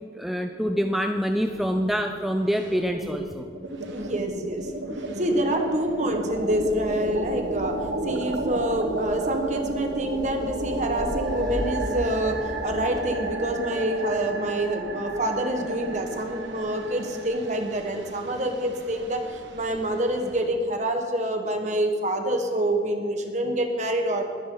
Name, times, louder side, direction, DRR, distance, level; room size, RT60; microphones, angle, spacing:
voice 1, 0.1-3.5, equal, ahead, 5 dB, 0.4 m, -26 dB
sound 1, 1.3-2.1 2.4-20.5, right 2 dB, 90° right, 1.4 m, -33 dB
voice 2, 3.9-4.7 5.2-24.3, right 1 dB, 40° right, 4 dB, 1.4 m, -27 dB
sound 2, 6.3-13.3, equal, 20° right, 1.3 m, -38 dB
21.0 x 10.0 x 3.9 m, 2.2 s
head